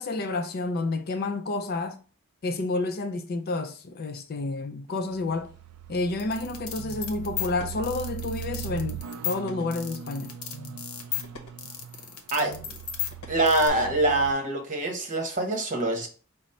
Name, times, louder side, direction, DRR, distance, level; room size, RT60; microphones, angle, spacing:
voice 1, 0.0-2.0 2.4-5.5 5.9-10.4, left 3 dB, 45° left, 0.4 m, -30 dB
sound 1, 4.9-14.3, right 9 dB, 90° right, 0.3 m, -40 dB
sound 2, 6.2-13.7, left 9 dB, 80° left, 0.8 m, -35 dB
voice 2, 12.3-12.8 13.3-16.1, right 2 dB, 35° right, 1.0 m, -25 dB
5.0 x 2.0 x 4.2 m
head